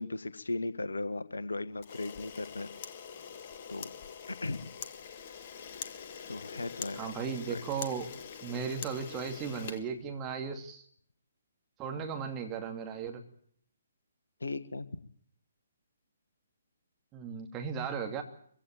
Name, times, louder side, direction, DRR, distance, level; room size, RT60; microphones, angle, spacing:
voice 1, 0.0-2.7 3.7-3.9 4.3-4.7 6.3-7.1 7.5-7.6 11.9-12.0 14.4-14.9, left 2 dB, 70° left, 11 dB, 1.4 m, -37 dB
Camera, 1.8-10.5, left 7 dB, 40° left, 1.6 m, -44 dB
voice 2, 6.9-8.1 8.4-10.8 11.8-13.2 17.1-18.2, right 6 dB, 20° right, 4 dB, 2.8 m, -36 dB
23.5 x 16.0 x 8.9 m, 0.63 s
figure-of-eight pair, 130°, 0 cm